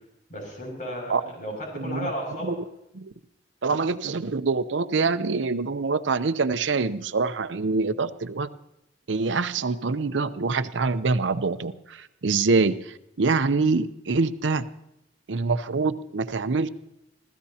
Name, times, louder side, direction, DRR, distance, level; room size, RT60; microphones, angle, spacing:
voice 1, 0.3-2.5, equal, 45° left, 0 dB, 6.3 m, -34 dB
voice 2, 1.7-2.1 2.4-2.6 3.0-3.1 3.6-8.5 9.1-14.6 15.3-16.7, right 4 dB, 85° right, 13 dB, 0.7 m, -25 dB
27.5 x 15.5 x 2.8 m, 0.84 s
head